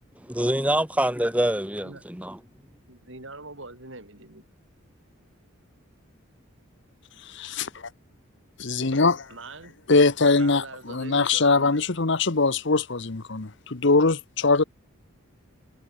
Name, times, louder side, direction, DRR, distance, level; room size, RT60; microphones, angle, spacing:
voice 1, 0.3-2.4, right 1 dB, 5° right, 2.5 m, -25 dB
voice 2, 2.9-4.4 9.3-9.7 10.4-11.8, right 2 dB, 60° right, 6.4 m, -43 dB
voice 3, 7.3-7.7 8.6-9.2 9.9-14.6, left 3 dB, 55° left, 1.1 m, -22 dB
head